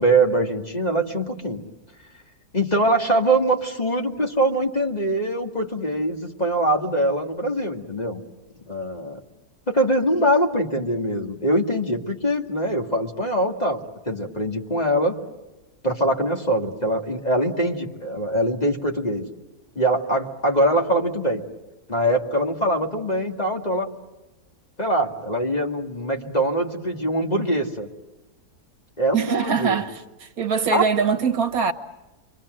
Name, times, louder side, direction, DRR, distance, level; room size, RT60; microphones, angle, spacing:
voice 1, 0.0-1.6 2.5-8.2 8.7-9.2 9.7-15.2 15.8-19.3 19.8-21.4 21.9-23.9 24.8-27.9 29.0-29.8 30.7-30.9, right 1 dB, 25° left, 2.1 m, -23 dB
voice 2, 29.1-31.7, right 6 dB, 65° right, 1.5 m, -23 dB
29.0 x 24.0 x 7.7 m
omnidirectional pair, 1.7 m